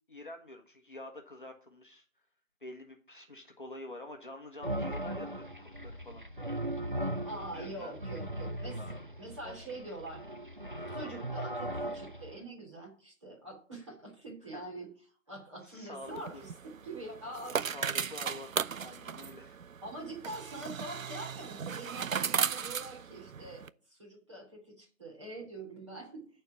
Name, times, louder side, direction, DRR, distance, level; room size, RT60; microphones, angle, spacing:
voice 1, 0.1-2.0 2.6-6.2 7.4-7.9 9.4-9.6 14.5-14.6 15.6-16.4 17.5-18.5 18.8-19.6, left 1 dB, 40° left, 2 dB, 1.4 m, -47 dB
sound 1, 4.6-12.4, right 1 dB, 40° right, 0.5 m, -38 dB
voice 2, 7.2-8.9 9.2-10.2 10.9-14.9 15.3-16.5 16.8-17.7 19.8-26.3, right 2 dB, 20° right, -2 dB, 3.2 m, -44 dB
sound 2, 16.0-23.7, right 7 dB, 80° right, 0.6 m, -36 dB
12.0 x 4.6 x 7.0 m, 0.40 s
figure-of-eight pair, 170°, 39 cm